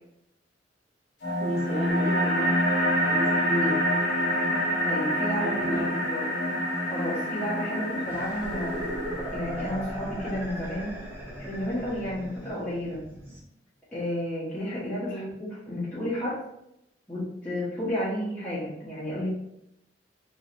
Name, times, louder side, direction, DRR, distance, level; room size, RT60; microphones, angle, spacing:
sound 1, 1.2-10.2, equal, 65° left, 1.1 m, -27 dB
voice 1, 1.4-2.5 2.8-3.8 5.4-6.3 15.1-15.3, left 1 dB, 35° left, -6 dB, 1.3 m, -33 dB
voice 2, 4.8-5.8 6.9-8.8 9.3-10.9 11.4-13.0 13.9-16.4 17.1-19.3, equal, 10° left, -10 dB, 1.2 m, -32 dB
sound 2, 8.1-13.4, right 1 dB, 10° right, 1.0 m, -38 dB
4.8 x 3.1 x 2.5 m, 0.82 s
head